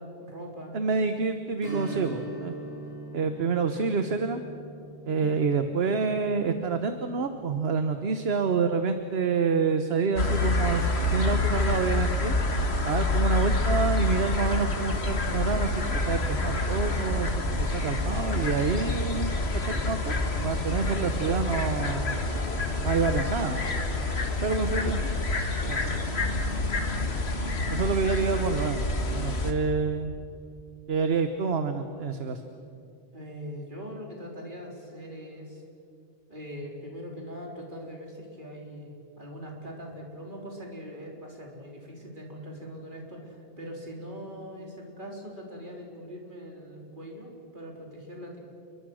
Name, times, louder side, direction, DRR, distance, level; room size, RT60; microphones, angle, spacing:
voice 1, 0.2-0.8 5.0-5.3 25.6-25.9 33.1-35.6 36.3-48.4, equal, 50° right, -1 dB, 4.4 m, -41 dB
voice 2, 0.7-2.5 3.1-4.4 5.0-12.3 12.8-19.3 19.7-22.2 22.8-23.6 24.4-25.0 27.7-30.1 30.9-32.4, right 5 dB, 70° right, 8 dB, 1.3 m, -28 dB
Strum, 1.6-10.8 11.1-11.2 13.8-13.9 14.4-14.5, right 1 dB, 20° right, 6.8 m, -43 dB
sound 1, 10.2-29.5, left 2 dB, 75° left, 2.1 m, -27 dB
28.5 x 22.5 x 6.4 m, 2.5 s
omnidirectional pair, 1.1 m